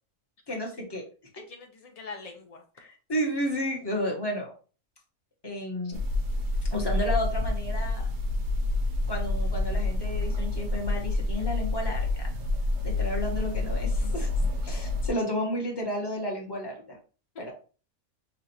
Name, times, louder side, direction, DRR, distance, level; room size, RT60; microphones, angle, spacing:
voice 1, 0.5-1.0 2.8-4.5 5.4-6.0 6.7-8.1 9.1-12.3 12.8-17.0 17.4-17.5, equal, 20° left, -1 dB, 0.9 m, -32 dB
voice 2, 1.3-2.6 5.8-5.9, left 4 dB, 80° left, 3 dB, 0.3 m, -43 dB
sound 1, 5.9-15.1, left 2 dB, 60° right, 0.9 m, -28 dB
5.2 x 2.5 x 2.8 m, 0.37 s
omnidirectional pair, 1.5 m